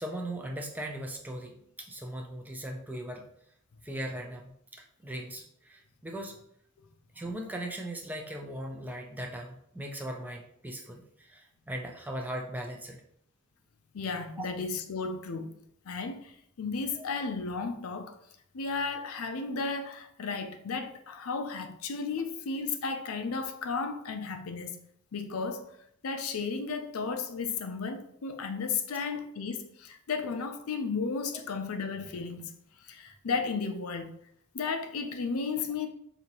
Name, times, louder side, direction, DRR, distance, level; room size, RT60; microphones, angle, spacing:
voice 1, 0.0-3.2 3.8-6.4 7.1-13.0 14.4-14.5 17.0-17.1 31.3-31.4, right 1 dB, 10° right, 0.4 m, -39 dB
voice 2, 13.9-15.5 15.8-18.2 18.5-24.8 25.1-25.8 26.0-32.5 32.8-34.1 34.5-35.9, left 4 dB, 80° left, 0.5 m, -34 dB
5.0 x 2.7 x 3.0 m
head